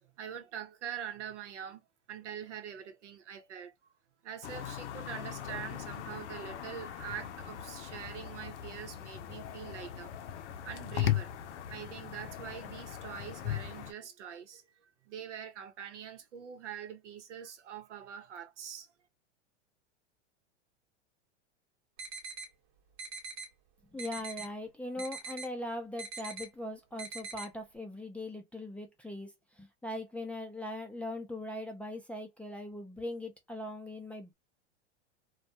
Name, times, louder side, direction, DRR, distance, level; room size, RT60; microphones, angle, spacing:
voice 1, 0.2-1.8 2.1-3.7 4.2-10.1 10.6-14.6 15.1-18.9, right 9 dB, 85° right, 0.8 m, -44 dB
sound 1, 4.4-13.9, left 11 dB, 80° left, 0.6 m, -38 dB
sound 2, 22.0-22.5 23.0-23.5 24.0-24.5 25.0-25.5 26.0-26.5 27.0-27.5, right 4 dB, 55° right, 1.0 m, -42 dB
voice 2, 23.9-34.3, left 1 dB, 5° left, 0.5 m, -40 dB
2.3 x 2.1 x 2.6 m
hypercardioid pair, 105°, 35 cm